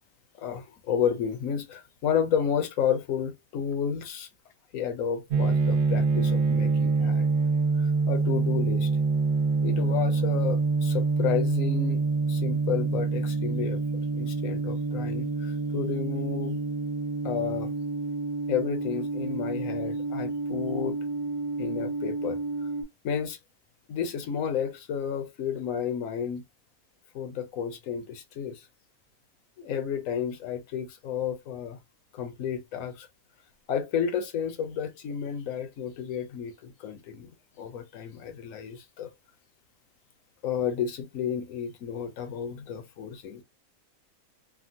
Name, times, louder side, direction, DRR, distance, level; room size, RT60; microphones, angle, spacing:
voice 1, 0.4-4.3 4.7-7.3 7.8-8.9 9.6-12.0 12.3-13.8 14.1-16.6 17.2-17.7 18.5-21.0 21.6-22.4 23.0-23.4 23.9-26.4 27.1-28.7 29.6-31.8 32.1-33.1 33.7-39.1 40.4-43.4, left 8 dB, 65° left, 1.1 m, -31 dB
sound 1, 5.3-22.8, right 4 dB, 50° right, 1.1 m, -27 dB
3.6 x 2.2 x 2.6 m
omnidirectional pair, 1.6 m